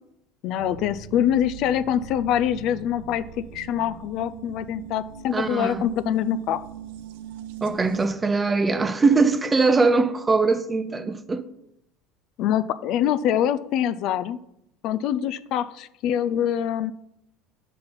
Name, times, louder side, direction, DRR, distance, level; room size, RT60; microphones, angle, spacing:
voice 1, 0.4-3.2 3.5-6.6 12.4-14.4 14.8-16.9, left 10 dB, 55° left, 0.3 m, -24 dB
sound 1, 0.6-8.1, right 10 dB, 90° right, 0.5 m, -41 dB
voice 2, 5.3-5.8 7.6-11.4, right 4 dB, 15° right, 0.5 m, -21 dB
5.5 x 5.3 x 5.7 m
supercardioid pair, 130°, 0 cm